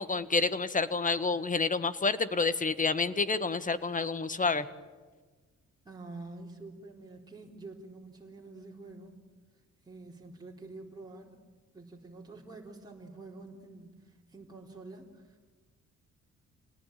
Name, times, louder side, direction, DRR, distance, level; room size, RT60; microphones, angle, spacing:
voice 1, 0.0-4.7, left 4 dB, 25° left, 13 dB, 1.6 m, -29 dB
voice 2, 5.8-9.2 9.9-11.3 11.7-15.5, right 2 dB, 15° right, -2 dB, 4.2 m, -47 dB
27.5 x 19.0 x 9.3 m, 1.4 s
cardioid pair, 90°, 29 cm